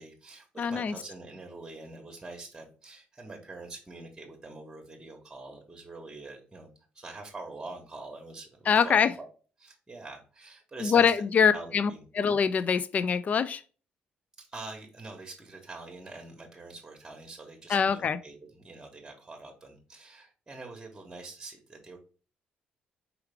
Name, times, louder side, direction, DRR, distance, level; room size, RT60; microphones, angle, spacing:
voice 1, 0.0-6.7 6.9-9.3 9.6-11.2 11.5-12.0 14.4-22.0, right 3 dB, 15° right, 1.3 m, -44 dB
voice 2, 0.6-0.9 8.7-9.1 10.8-13.6 17.7-18.2, left 6 dB, 45° left, 0.3 m, -24 dB
4.8 x 3.2 x 3.4 m
cardioid pair, 90°, 4 cm